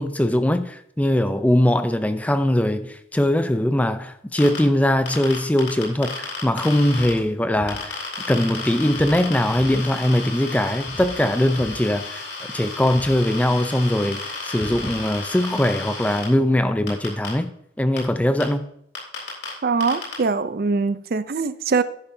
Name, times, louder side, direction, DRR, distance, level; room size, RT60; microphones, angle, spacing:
voice 1, 0.0-8.0 8.3-12.3 12.5-17.5 17.8-18.6, left 1 dB, 10° left, 0.4 m, -21 dB
sound 1, 4.4-4.6 5.1-7.1 7.7-16.2 16.9-17.3 18.0-18.1 18.4-18.5 18.9-19.5 19.8-20.1, left 4 dB, 55° left, 3.5 m, -33 dB
sound 2, 7.2-7.3 7.5-8.3 8.5-9.2 9.5-10.2 10.5-11.2 11.5-12.3 12.5-13.2 13.5-14.9, equal, 30° left, 1.7 m, -40 dB
voice 2, 19.6-21.8, right 4 dB, 50° right, 0.4 m, -22 dB
10.5 x 9.6 x 2.7 m
head